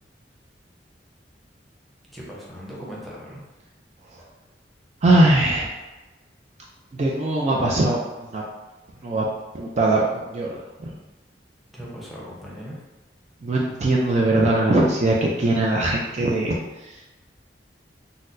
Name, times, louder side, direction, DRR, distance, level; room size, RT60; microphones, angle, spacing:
voice 1, 2.1-3.4 11.7-12.8, equal, ahead, -6 dB, 0.7 m, -38 dB
voice 2, 5.0-5.7 6.9-8.4 9.0-9.3 9.5-10.5 10.8-10.9 13.4-17.0, right 2 dB, 40° right, -3 dB, 0.4 m, -21 dB
4.1 x 2.1 x 2.6 m, 1.1 s
head